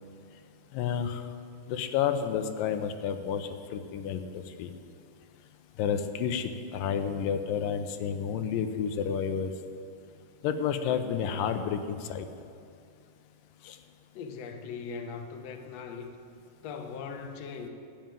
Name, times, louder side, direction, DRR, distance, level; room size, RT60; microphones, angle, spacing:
voice 1, 0.7-1.2 1.7-4.7 5.8-9.5 10.4-12.3 13.6-13.8, left 7 dB, 85° left, 8 dB, 2.5 m, -30 dB
voice 2, 14.1-16.1 16.6-17.7, left 5 dB, 65° left, 5 dB, 1.8 m, -39 dB
13.0 x 9.0 x 9.0 m, 2.4 s
omnidirectional pair, 3.8 m